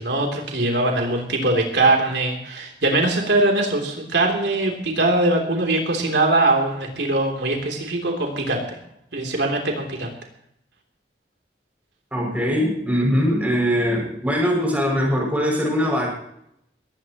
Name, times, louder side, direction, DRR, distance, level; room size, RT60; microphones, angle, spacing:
voice 1, 0.0-8.6 9.1-10.1, right 2 dB, 75° right, 1 dB, 3.3 m, -21 dB
voice 2, 12.1-16.1, equal, 10° right, -1 dB, 6.5 m, -21 dB
21.0 x 17.0 x 3.1 m, 0.74 s
head